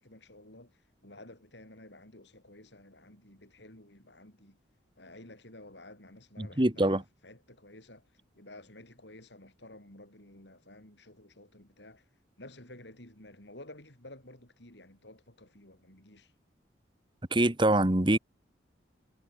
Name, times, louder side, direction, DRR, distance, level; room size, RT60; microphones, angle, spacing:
voice 1, 0.0-4.6 5.0-12.1 12.4-16.3, left 1 dB, 70° left, 6.8 m, -52 dB
voice 2, 6.4-7.0 17.3-18.2, right 1 dB, 25° right, 1.6 m, -24 dB
head